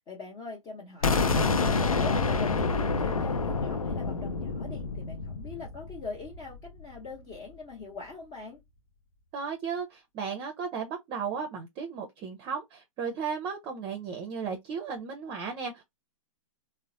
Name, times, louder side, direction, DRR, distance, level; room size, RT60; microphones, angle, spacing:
voice 1, 0.1-8.6, left 4 dB, 25° left, 0.9 m, -42 dB
sound 1, 1.0-6.8, left 4 dB, 80° left, 0.6 m, -28 dB
voice 2, 9.3-15.8, right 6 dB, 30° right, 0.6 m, -35 dB
3.8 x 2.1 x 2.5 m
figure-of-eight pair, 110°, 18 cm